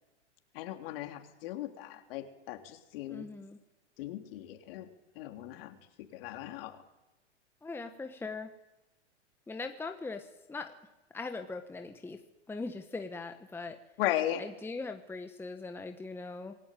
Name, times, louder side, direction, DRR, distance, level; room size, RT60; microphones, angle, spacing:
voice 1, 0.5-3.3 4.0-4.9 5.1-6.8 14.0-14.4, left 13 dB, 55° left, 5 dB, 3.2 m, -37 dB
voice 2, 3.1-3.6 7.6-8.5 9.5-10.7 11.1-12.2 12.5-13.8 14.4-16.5, left 3 dB, 5° left, 6 dB, 1.3 m, -40 dB
26.0 x 17.0 x 9.3 m, 1.0 s
hypercardioid pair, 120°, 35 cm